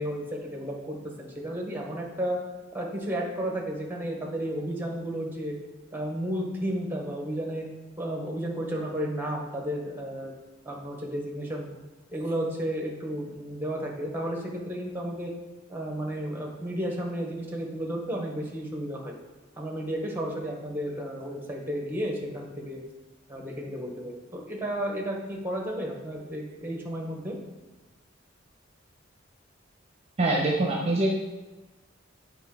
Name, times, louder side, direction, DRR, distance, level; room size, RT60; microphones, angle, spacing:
voice 1, 0.0-2.4 2.7-5.5 5.9-7.7 8.0-10.3 10.6-11.7 12.1-15.3 15.7-19.1 19.6-22.8 23.3-27.3, right 1 dB, 10° right, 0 dB, 1.2 m, -32 dB
voice 2, 30.2-31.1, right 2 dB, 35° right, -1 dB, 0.9 m, -24 dB
8.3 x 3.6 x 4.8 m, 1.2 s
head